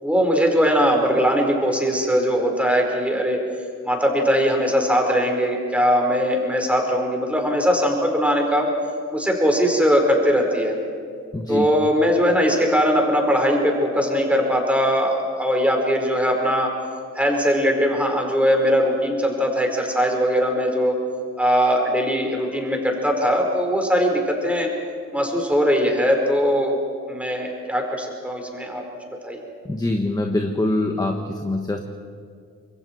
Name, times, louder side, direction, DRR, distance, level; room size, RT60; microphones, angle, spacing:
voice 1, 0.0-3.4 3.8-8.7 9.1-10.7 11.5-16.7 17.1-20.9 21.4-24.7 25.1-26.8 27.1-28.8 29.2-29.4, equal, 5° right, 1 dB, 4.9 m, -20 dB
voice 2, 11.3-11.7 29.6-31.8, left 2 dB, 10° left, 3 dB, 1.4 m, -24 dB
26.0 x 22.0 x 4.7 m, 2.2 s
cardioid pair, 90°, 30 cm